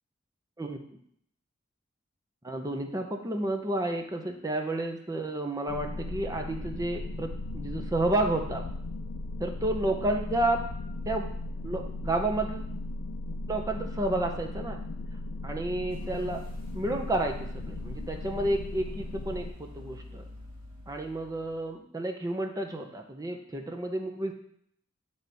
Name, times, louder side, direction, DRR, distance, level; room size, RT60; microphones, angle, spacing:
voice 1, 2.4-8.6 9.4-10.7 11.1-11.3 11.6-12.7 13.5-14.8 15.4-16.5 16.7-20.2 20.9-24.3, right 1 dB, 15° right, 3 dB, 0.6 m, -31 dB
sound 1, 5.7-19.5, left 2 dB, 80° left, 0.4 m, -37 dB
sound 2, 15.9-21.8, left 1 dB, 80° right, 2.0 m, -48 dB
9.2 x 3.5 x 4.0 m, 0.67 s
head